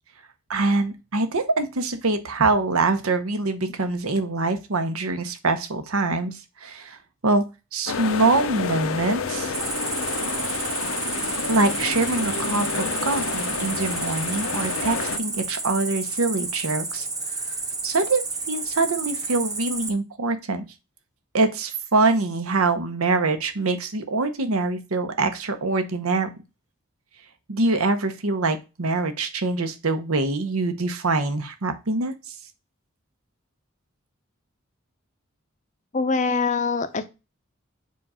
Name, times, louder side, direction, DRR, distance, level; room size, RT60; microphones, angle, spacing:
voice 1, 0.5-7.4 7.7-9.5 11.5-17.1 17.8-20.6 21.3-26.3 27.5-32.2, right 3 dB, 85° right, 9 dB, 0.9 m, -24 dB
sound 1, 7.9-15.2, left 5 dB, 75° left, 0.6 m, -29 dB
Cricket, 9.5-19.9, right 3 dB, 15° right, 0.9 m, -31 dB
voice 2, 35.9-37.1, left 4 dB, 35° left, 10 dB, 0.6 m, -23 dB
7.4 x 2.5 x 5.5 m, 0.27 s
head